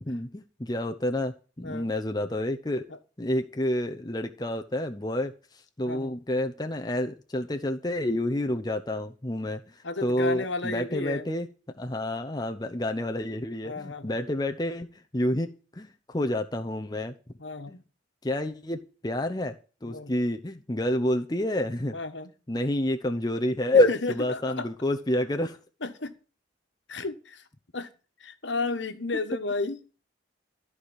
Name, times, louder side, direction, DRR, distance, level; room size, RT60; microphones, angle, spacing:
voice 1, 0.0-2.9 3.2-5.3 5.8-9.6 10.0-11.5 11.7-17.1 17.7-17.8 18.2-19.6 19.8-21.9 22.5-25.6, left 1 dB, 20° left, 5 dB, 0.7 m, -28 dB
voice 2, 9.8-11.2 13.6-14.2 17.4-17.8 19.8-20.1 21.9-22.3 23.9-24.7 25.8-26.2 26.9-27.5 27.7-27.9 28.2-29.8, left 3 dB, 75° left, 8 dB, 1.4 m, -33 dB
14.0 x 4.9 x 8.9 m, 0.36 s
head